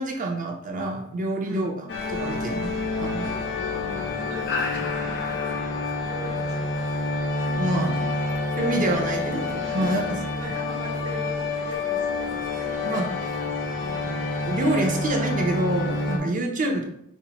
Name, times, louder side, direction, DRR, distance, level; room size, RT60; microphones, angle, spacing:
voice 1, 0.0-3.3 7.6-8.0 8.6-10.0 12.8-13.1 14.4-16.8, right 1 dB, 40° right, 2 dB, 0.6 m, -27 dB
sound 1, 1.9-16.2, left 3 dB, 55° left, 0.5 m, -28 dB
voice 2, 3.5-5.4 5.7-8.1 8.3-8.5 8.8-9.1 9.6-14.7 16.6-16.8, equal, 85° right, -4 dB, 1.2 m, -41 dB
5.3 x 2.1 x 2.9 m, 0.73 s
head